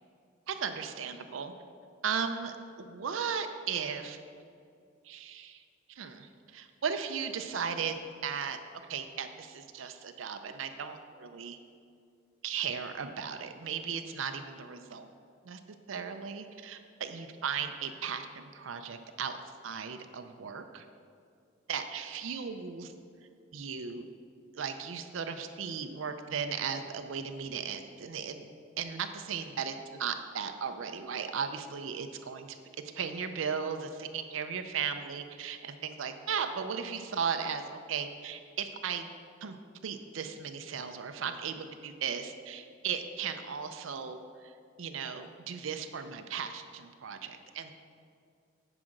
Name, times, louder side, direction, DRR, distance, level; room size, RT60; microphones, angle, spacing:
voice 1, 0.5-1.5 2.0-4.2 5.0-5.6 5.9-8.6 8.8-11.6 12.4-15.1 15.4-15.6 15.9-19.4 19.6-20.9 21.7-22.9 23.5-24.1 24.5-28.5 28.8-32.6 32.9-39.1 39.4-39.6 39.8-47.7, right 6 dB, 80° right, 7 dB, 0.5 m, -36 dB
9.7 x 5.0 x 6.4 m, 2.3 s
head